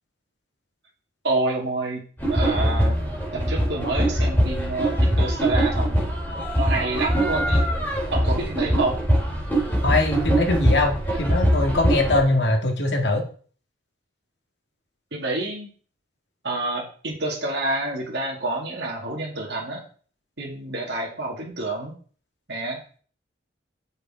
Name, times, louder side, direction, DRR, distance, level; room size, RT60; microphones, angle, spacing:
voice 1, 1.2-2.0 2.3-3.0 3.3-6.0 6.5-7.6 8.1-8.9 15.1-15.7 16.4-19.8 20.4-21.9 22.5-22.8, right 2 dB, 60° right, -3 dB, 2.4 m, -28 dB
sound 1, 2.2-12.2, right 1 dB, 10° left, 4.4 m, -22 dB
voice 2, 9.8-13.3, left 2 dB, 60° left, 3 dB, 1.9 m, -22 dB
6.9 x 6.6 x 5.0 m, 0.43 s
head